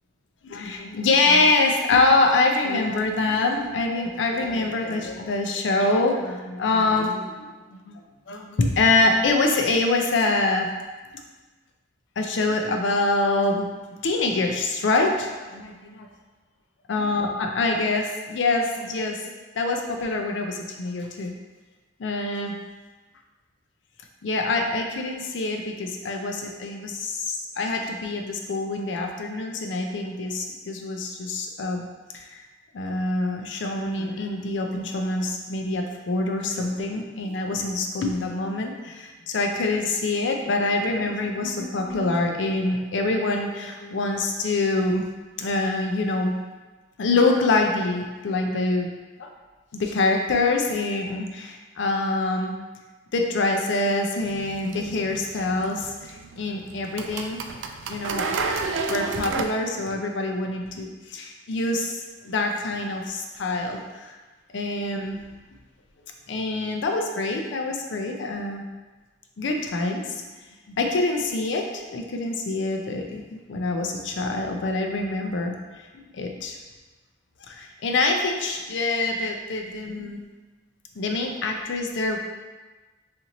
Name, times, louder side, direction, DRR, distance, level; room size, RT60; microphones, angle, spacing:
voice 1, 0.4-10.7 12.2-13.6 14.0-16.1 16.9-19.3 19.6-21.3 22.0-22.6 24.2-31.8 32.1-32.4 32.7-45.0 45.4-46.3 47.0-48.9 49.2-49.3 49.7-52.5 53.1-57.4 57.9-58.3 58.9-64.2 64.5-65.2 66.3-68.6 69.4-70.2 70.7-75.5 75.9-76.6 77.5-80.2 81.0-82.2, left 2 dB, 75° left, 3 dB, 0.4 m, -25 dB
sound 1, 54.2-59.4, right 4 dB, 80° right, 0.3 m, -32 dB
3.9 x 2.5 x 2.9 m, 1.3 s
head